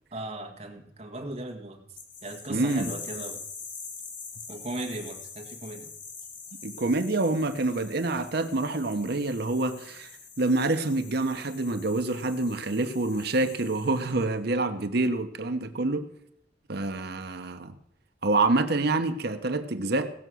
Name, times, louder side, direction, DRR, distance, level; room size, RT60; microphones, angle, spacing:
voice 1, 0.1-1.8 2.2-3.4 4.5-5.9, right 2 dB, 35° right, 2 dB, 1.7 m, -37 dB
sound 1, 2.0-14.3, left 5 dB, 75° left, 2.6 m, -44 dB
voice 2, 2.5-2.9 6.6-10.1 10.4-16.1 16.7-17.7 18.2-20.1, right 2 dB, 60° right, 8 dB, 0.9 m, -27 dB
17.0 x 6.8 x 6.2 m, 0.76 s
head